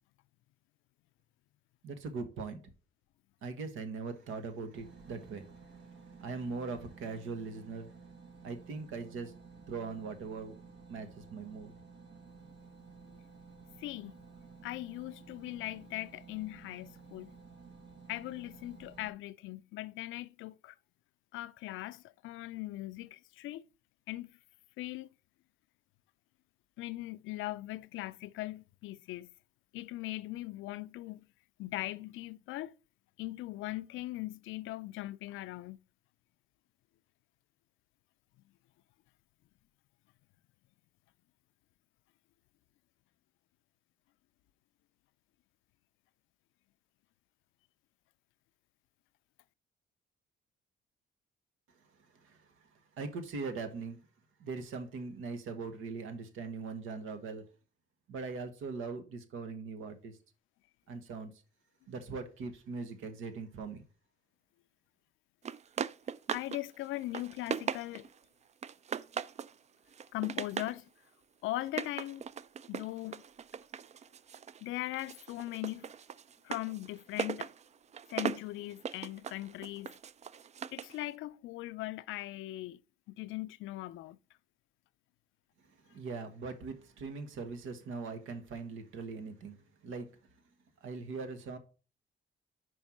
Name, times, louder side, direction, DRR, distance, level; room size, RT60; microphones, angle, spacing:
voice 1, 1.8-2.6 3.4-5.4 6.2-7.9 8.4-9.3 9.7-10.5 10.9-11.7 52.2-52.4 53.0-54.0 54.4-57.4 58.1-60.1 60.9-61.3 61.9-63.8 85.9-89.6 89.8-90.1 90.8-91.6, right 4 dB, 85° right, 1.3 m, -40 dB
sound 1, 4.7-19.1, right 5 dB, 65° right, 1.3 m, -54 dB
voice 2, 13.8-14.2 14.6-17.3 18.1-20.8 21.3-23.6 24.1-24.4 24.8-25.1 26.8-29.3 29.7-31.3 31.6-32.7 33.2-35.8 66.3-68.1 70.1-70.9 71.4-72.2 72.7-73.2 74.6-75.9 76.4-77.5 78.1-79.9 80.7-82.8 83.1-84.2, left 17 dB, 85° left, 0.4 m, -40 dB
sound 2, 65.4-66.6 66.9-68.2 68.6-69.5 69.9-70.8 71.6-74.6 74.9-81.0, right 7 dB, 35° right, 0.4 m, -39 dB
5.4 x 4.6 x 6.0 m
cardioid pair, 90°, 20 cm